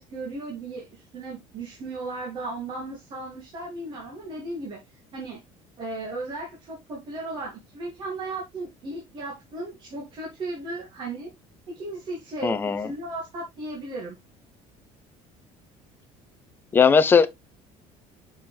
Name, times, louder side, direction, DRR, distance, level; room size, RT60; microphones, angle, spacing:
voice 1, 0.0-4.8 5.1-5.4 5.8-11.3 11.7-14.2, right 2 dB, 35° right, 2.4 m, -35 dB
voice 2, 12.4-12.9 16.7-17.3, left 6 dB, 15° left, 0.7 m, -18 dB
6.7 x 5.6 x 3.2 m
cardioid pair, 180°, 13 cm